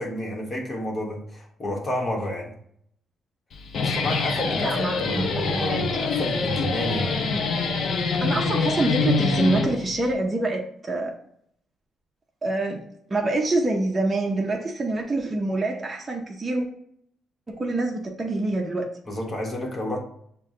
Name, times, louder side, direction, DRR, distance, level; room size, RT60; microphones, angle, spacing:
voice 1, 0.0-2.5 3.8-7.2 19.1-20.0, equal, 35° left, 0 dB, 1.1 m, -30 dB
Guitar, 3.5-10.1, left 4 dB, 65° left, 0.7 m, -25 dB
voice 2, 4.6-5.8 8.2-11.1 12.4-12.8 13.1-16.7 17.5-18.9, right 2 dB, 25° right, 0 dB, 0.7 m, -26 dB
5.9 x 2.2 x 3.7 m, 0.68 s
cardioid pair, 90°, 0 cm